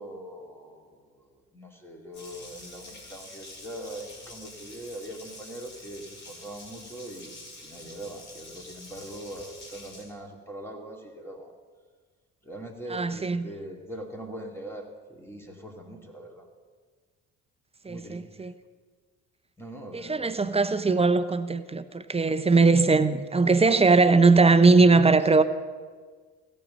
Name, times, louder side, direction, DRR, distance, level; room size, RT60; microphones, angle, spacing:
voice 1, 0.0-7.3 7.6-11.5 12.4-16.5 17.9-18.2 19.6-20.9, right 1 dB, 5° left, 2.2 m, -42 dB
Water tap faucet, 2.1-10.0, left 2 dB, 90° left, 3.0 m, -47 dB
voice 2, 12.9-13.4 17.8-18.5 19.9-25.4, right 3 dB, 15° right, 0.7 m, -20 dB
16.0 x 5.5 x 7.5 m
hypercardioid pair, 50°, 40 cm